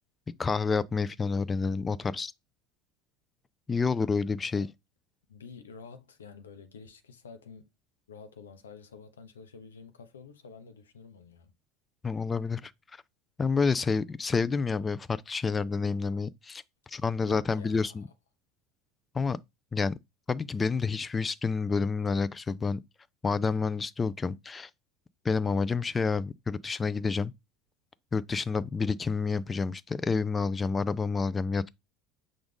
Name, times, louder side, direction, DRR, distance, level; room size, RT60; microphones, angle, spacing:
voice 1, 0.4-2.3 3.7-4.7 12.0-12.7 13.4-16.6 16.9-18.0 19.1-19.4 19.7-19.9 20.3-22.8 23.2-24.7 25.2-27.3 28.1-31.7, left 4 dB, 20° left, 0.4 m, -29 dB
voice 2, 5.3-7.7 8.1-11.5 17.2-18.0, left 5 dB, 85° left, 0.6 m, -49 dB
6.0 x 2.4 x 3.5 m
hypercardioid pair, 75°, 0 cm